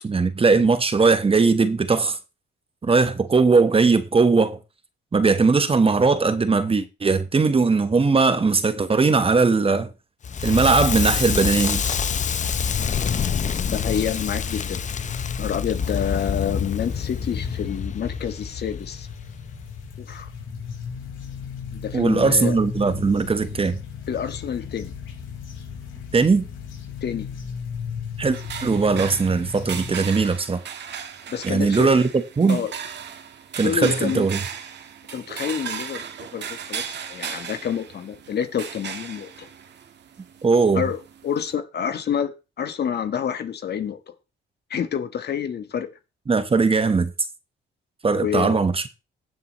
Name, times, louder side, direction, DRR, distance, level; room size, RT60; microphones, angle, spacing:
voice 1, 0.0-2.2 2.8-4.6 5.1-9.9 10.4-11.8 21.9-23.8 26.1-26.4 28.2-30.6 31.4-32.1 32.4-32.6 33.6-34.4 40.4-40.8 46.3-47.1 48.0-48.8, right 4 dB, 30° right, 1.3 m, -19 dB
Crackle, 10.2-19.2, left 7 dB, 40° left, 0.7 m, -26 dB
sound 1, 13.7-29.9, left 6 dB, 85° left, 4.9 m, -36 dB
voice 2, 13.7-14.8 15.4-19.1 20.0-20.3 21.7-22.6 24.1-24.9 27.0-27.3 31.3-32.0 32.5-32.7 33.6-34.3 35.1-39.5 40.7-41.0 41.2-42.3 42.6-44.0 44.7-45.9 48.1-48.7, left 8 dB, 55° left, 1.5 m, -28 dB
sound 2, 28.3-41.6, right 7 dB, 60° right, 1.6 m, -36 dB
17.0 x 7.3 x 3.1 m
cardioid pair, 90°, 20 cm